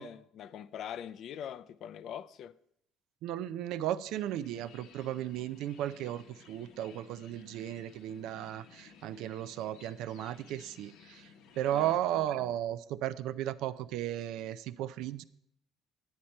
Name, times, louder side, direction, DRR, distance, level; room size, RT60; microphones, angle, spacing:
voice 1, 0.0-2.5 11.7-12.5, left 9 dB, 50° left, 0.3 m, -43 dB
voice 2, 3.2-15.2, right 12 dB, 75° right, 0.4 m, -35 dB
sound 1, 4.1-11.9, left 6 dB, 80° left, 1.0 m, -57 dB
9.4 x 8.8 x 4.3 m
cardioid pair, 155°, 0 cm